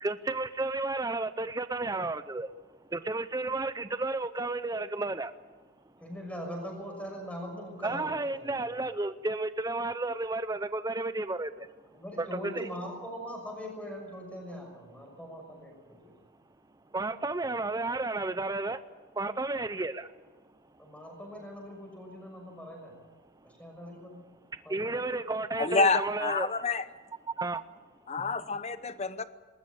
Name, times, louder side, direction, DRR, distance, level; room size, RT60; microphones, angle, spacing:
voice 1, 0.0-2.5 2.9-5.3 7.8-11.7 12.2-12.7 16.9-18.8 19.1-20.1 24.7-26.6 27.4-27.6, right 2 dB, 15° right, 12 dB, 0.6 m, -32 dB
voice 2, 6.0-8.7 11.9-16.1 20.8-23.0 23.6-24.2 24.6-25.2, equal, 5° left, 2 dB, 6.1 m, -41 dB
voice 3, 25.6-26.8 28.1-29.2, left 4 dB, 30° left, 13 dB, 0.9 m, -28 dB
20.0 x 19.5 x 8.5 m, 1.4 s
head